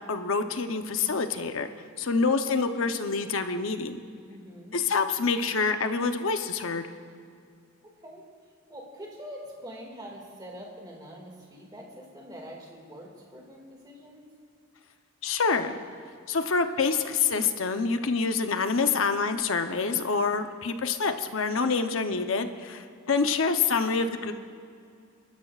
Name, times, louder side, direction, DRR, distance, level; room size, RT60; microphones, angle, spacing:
voice 1, 0.1-1.7 2.0-4.0 4.7-6.8 15.2-15.8 16.3-24.3, left 4 dB, 70° left, 8 dB, 0.8 m, -26 dB
voice 2, 4.3-4.8 7.8-8.2 8.7-14.3, equal, 20° right, -1 dB, 2.1 m, -44 dB
29.5 x 12.5 x 2.4 m, 2.3 s
head